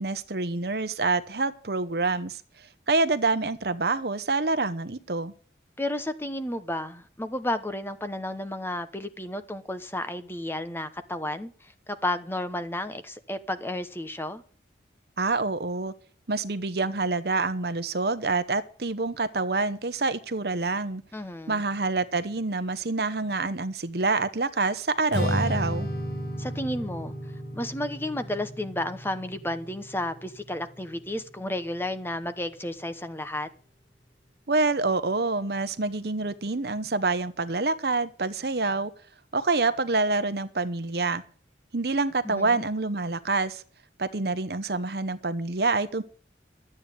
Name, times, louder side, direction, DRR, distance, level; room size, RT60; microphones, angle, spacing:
voice 1, 0.0-2.4 2.9-5.3 15.2-15.9 16.3-21.0 21.5-25.9 34.5-38.9 39.3-41.2 41.7-43.6 44.0-46.0, right 3 dB, 55° right, 0.9 m, -27 dB
voice 2, 5.8-14.4 21.1-21.6 26.4-27.1 27.5-33.5 42.2-42.6, left 1 dB, 10° left, 0.9 m, -32 dB
Strum, 25.1-31.4, equal, 65° left, 3.6 m, -33 dB
12.5 x 8.7 x 8.3 m
head